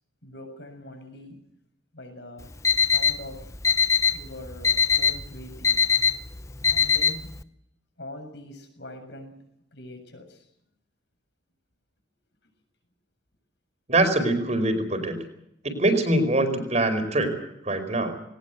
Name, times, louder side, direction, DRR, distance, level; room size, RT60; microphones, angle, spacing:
voice 1, 0.2-1.4 1.9-2.5 2.8-3.5 4.1-5.9 6.6-7.3 8.0-10.5, left 1 dB, 65° left, 5 dB, 7.3 m, -43 dB
Alarm, 2.4-7.4, left 6 dB, 15° left, 0.8 m, -23 dB
voice 2, 13.9-15.2 15.6-18.1, right 1 dB, 35° right, 7 dB, 4.7 m, -24 dB
20.5 x 19.5 x 8.2 m, 0.78 s
head